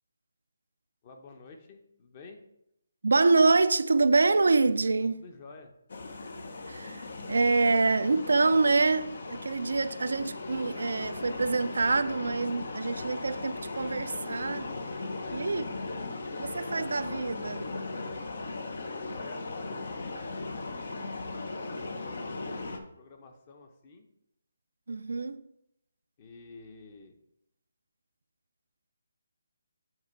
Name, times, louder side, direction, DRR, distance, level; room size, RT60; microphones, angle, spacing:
voice 1, 1.0-2.4 5.1-5.7 15.1-15.7 19.1-20.6 22.1-24.0 26.2-27.1, left 3 dB, 30° left, 0.9 m, -50 dB
voice 2, 3.0-5.2 6.7-14.7 15.3-15.6 16.4-17.7 24.9-25.4, right 3 dB, 75° right, 0.4 m, -26 dB
sound 1, 5.9-22.8, left 3 dB, 60° left, 0.8 m, -38 dB
7.9 x 3.6 x 4.3 m
figure-of-eight pair, 155°, 0 cm